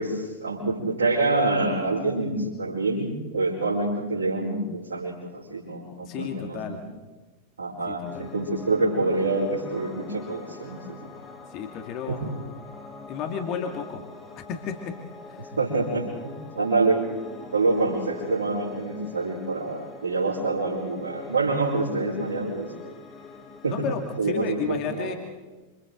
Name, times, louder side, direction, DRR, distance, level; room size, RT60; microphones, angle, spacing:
voice 1, 0.0-6.7 7.6-11.1 12.1-12.2 15.6-17.0 17.5-22.7 23.6-23.8 24.2-25.1, right 3 dB, 75° right, -7 dB, 4.9 m, -26 dB
voice 2, 6.0-6.8 7.9-8.3 11.5-12.2 13.1-14.0 14.5-14.9 15.3-15.5 23.7-25.2, left 7 dB, 40° left, 4 dB, 2.3 m, -32 dB
Piano, 8.1-24.2, left 3 dB, 20° left, 3.9 m, -43 dB
28.0 x 26.5 x 3.9 m, 1.2 s
figure-of-eight pair, 90°, 0 cm